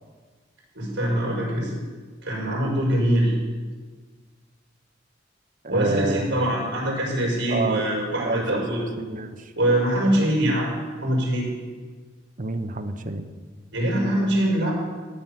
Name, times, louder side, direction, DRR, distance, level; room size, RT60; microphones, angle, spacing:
voice 1, 0.7-1.7 2.2-3.3 5.7-8.8 9.5-11.5 13.7-14.7, right 1 dB, 75° right, -3 dB, 5.1 m, -23 dB
voice 2, 5.6-6.4 7.5-7.8 8.1-9.5 12.4-13.3, right 2 dB, 45° right, 8 dB, 0.9 m, -28 dB
14.5 x 5.8 x 9.1 m, 1.5 s
head